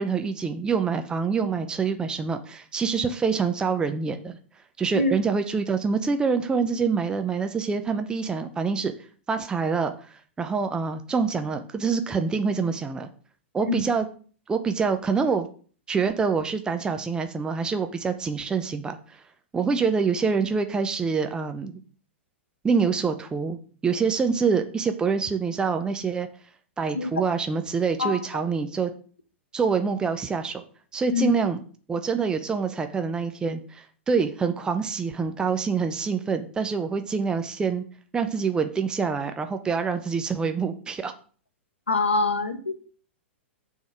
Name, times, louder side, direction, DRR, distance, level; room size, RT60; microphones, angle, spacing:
voice 1, 0.0-4.4 4.8-8.9 9.3-13.1 13.5-14.1 14.5-15.5 15.9-19.2 19.5-21.8 22.6-23.6 23.8-26.3 26.8-28.9 29.5-30.6 30.9-31.6 31.9-37.8 38.1-41.1, right 5 dB, 10° right, 7 dB, 0.6 m, -26 dB
voice 2, 41.9-42.8, left 3 dB, 75° left, 9 dB, 1.0 m, -24 dB
7.6 x 3.6 x 6.1 m, 0.43 s
figure-of-eight pair, 100°, 7 cm